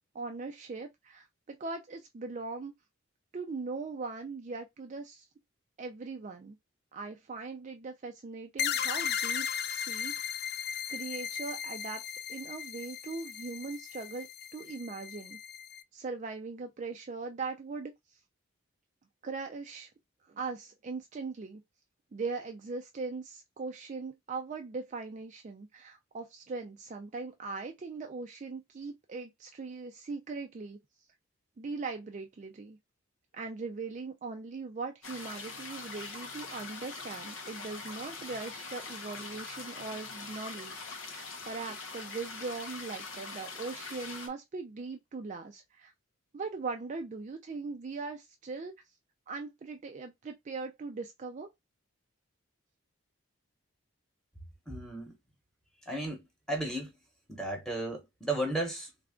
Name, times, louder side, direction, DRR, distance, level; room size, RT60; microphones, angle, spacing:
voice 1, 0.1-2.7 3.3-5.3 5.8-6.6 6.9-10.1 10.5-10.6 10.9-12.0 12.3-15.4 15.9-18.2 19.2-19.9 20.2-21.6 22.1-30.8 31.6-32.8 33.3-40.7 41.1-45.9 46.3-48.7 49.3-51.5, right 4 dB, 35° right, 0.3 m, -40 dB
sound 1, 8.6-15.8, left 8 dB, 50° left, 0.3 m, -36 dB
sound 2, 35.0-44.3, left 4 dB, 70° left, 0.8 m, -43 dB
voice 2, 54.7-55.2 55.9-56.9 57.3-58.9, right 1 dB, 5° left, 1.0 m, -34 dB
3.3 x 2.3 x 3.6 m
head